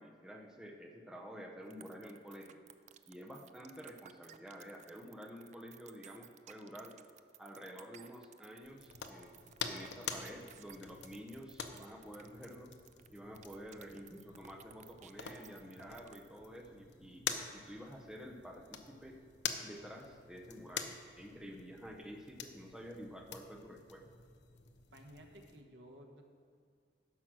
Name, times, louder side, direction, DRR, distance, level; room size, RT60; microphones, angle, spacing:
voice 1, 0.0-2.6 3.1-7.0 7.4-12.7 13.1-19.2 19.6-20.9 21.1-24.0, equal, 5° right, 1 dB, 0.7 m, -50 dB
sound 1, 1.7-16.4, right 10 dB, 40° right, 0.3 m, -57 dB
sound 2, 8.6-25.6, left 7 dB, 85° left, 0.7 m, -47 dB
voice 2, 24.9-26.2, equal, 85° right, 3 dB, 1.2 m, -55 dB
10.5 x 6.4 x 6.1 m, 2.2 s
head